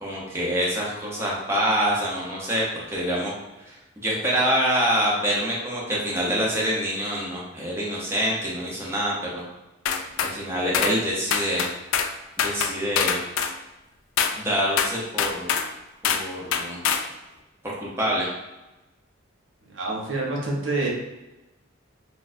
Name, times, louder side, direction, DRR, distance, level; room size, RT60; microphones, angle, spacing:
voice 1, 0.0-3.3 3.7-9.4 10.3-11.7 12.4-13.2 14.3-15.5 16.0-16.8 17.6-18.3, equal, 15° right, -5 dB, 0.7 m, -26 dB
sound 1, 9.9-10.3 10.7-11.0 11.3-12.1 12.4-13.6 14.2-14.4 14.8-15.7 16.0-16.3 16.5-17.1, left 7 dB, 80° left, 0.3 m, -24 dB
voice 2, 19.7-20.9, right 2 dB, 65° right, -2 dB, 0.8 m, -27 dB
4.2 x 2.4 x 2.5 m, 1.0 s
head